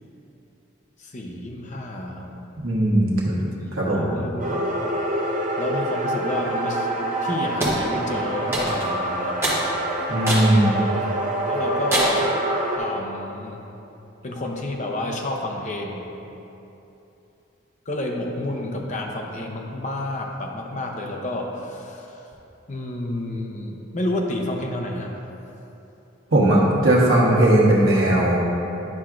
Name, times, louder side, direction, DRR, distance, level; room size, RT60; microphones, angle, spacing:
voice 1, 1.0-2.3 3.9-4.7 5.2-9.4 10.6-11.0 11.5-12.3 12.8-13.6 14.2-16.1 17.9-22.1 22.7-25.2, left 1 dB, 35° left, 1 dB, 0.6 m, -30 dB
voice 2, 2.6-4.1 10.1-10.8 26.3-28.4, right 1 dB, 80° right, -5 dB, 1.2 m, -18 dB
sound 1, 4.4-12.8, right 1 dB, 40° right, 0.6 m, -26 dB
sound 2, 7.6-7.8 8.5-8.9 9.4-9.6 10.3-10.5 11.0-11.1 11.9-12.3, right 1 dB, 15° right, 1.1 m, -24 dB
9.6 x 5.7 x 2.5 m, 3.0 s
head